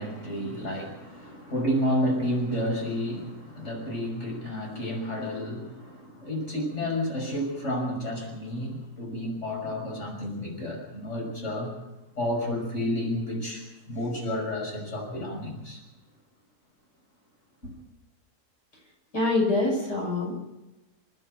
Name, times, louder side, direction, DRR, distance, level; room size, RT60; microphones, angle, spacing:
voice 1, 0.0-11.7 12.2-15.8 17.6-17.7, equal, 45° left, 0 dB, 6.7 m, -31 dB
voice 2, 19.1-20.3, left 2 dB, 85° left, -1 dB, 6.5 m, -25 dB
29.0 x 10.5 x 9.1 m, 1.0 s
omnidirectional pair, 1.7 m